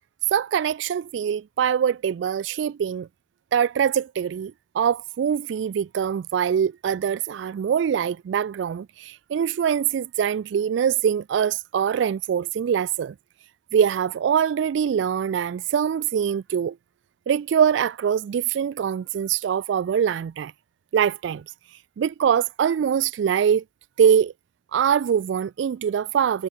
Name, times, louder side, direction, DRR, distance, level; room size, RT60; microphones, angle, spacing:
voice 1, 0.3-3.1 3.5-13.1 13.7-16.8 17.3-20.5 20.9-21.4 21.7-23.6 24.0-24.3 24.7-26.5, right 8 dB, 75° right, 0.3 m, -23 dB
head